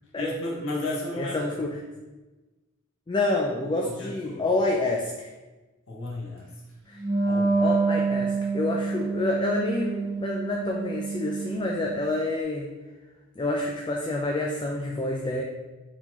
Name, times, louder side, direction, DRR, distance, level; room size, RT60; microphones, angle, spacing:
voice 1, 0.2-1.4 3.8-4.4 5.9-6.5 7.3-7.6, left 2 dB, 65° left, -3 dB, 1.0 m, -33 dB
voice 2, 1.2-1.7 3.1-5.3 6.9-7.0 7.6-12.7 13.4-15.4, left 2 dB, 20° left, 0 dB, 0.4 m, -28 dB
Wind instrument woodwind instrument, 7.0-12.1, right 4 dB, 65° right, 1.4 m, -27 dB
4.5 x 3.9 x 2.9 m, 1.1 s
head